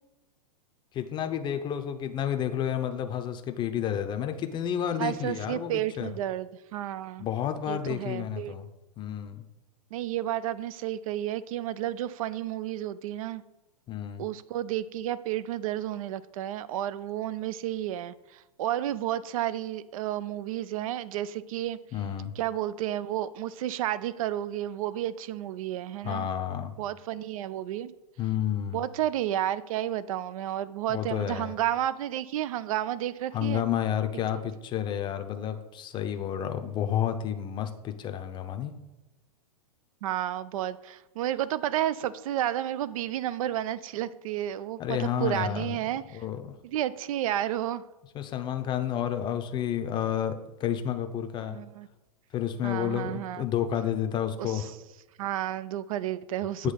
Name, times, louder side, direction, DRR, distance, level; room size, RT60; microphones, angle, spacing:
voice 1, 0.9-6.1 7.2-8.7 9.0-9.4 13.9-14.2 21.9-22.3 26.0-26.7 28.2-28.8 30.9-31.5 33.3-38.7 44.8-45.8 46.1-46.6 48.1-51.6 52.3-54.7 56.6-56.7, left 10 dB, 25° left, 7 dB, 0.6 m, -30 dB
voice 2, 5.0-7.3 7.7-8.5 9.9-13.4 14.2-21.8 22.4-26.3 26.8-27.9 28.7-33.6 34.3-34.4 40.0-46.0 46.6-47.8 51.4-51.9 52.6-53.5 54.4-54.7 55.2-56.7, right 12 dB, 60° right, 17 dB, 0.4 m, -31 dB
8.2 x 3.0 x 5.7 m, 1.0 s
hypercardioid pair, 120°, 20 cm